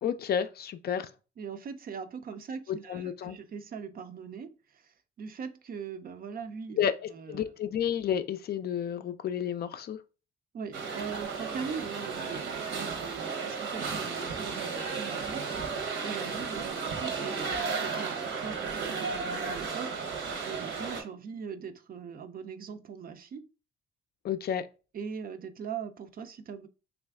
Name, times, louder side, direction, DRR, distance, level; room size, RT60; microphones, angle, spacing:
voice 1, 0.0-1.1 2.9-3.4 6.8-7.0 7.3-10.0 24.2-24.6, left 9 dB, 50° left, 0.4 m, -31 dB
voice 2, 1.4-7.5 10.5-23.5 24.9-26.7, right 6 dB, 45° right, 0.5 m, -41 dB
sound 1, 10.7-21.0, right 5 dB, 75° right, 0.9 m, -34 dB
3.2 x 2.5 x 3.4 m
cardioid pair, 90°, 20 cm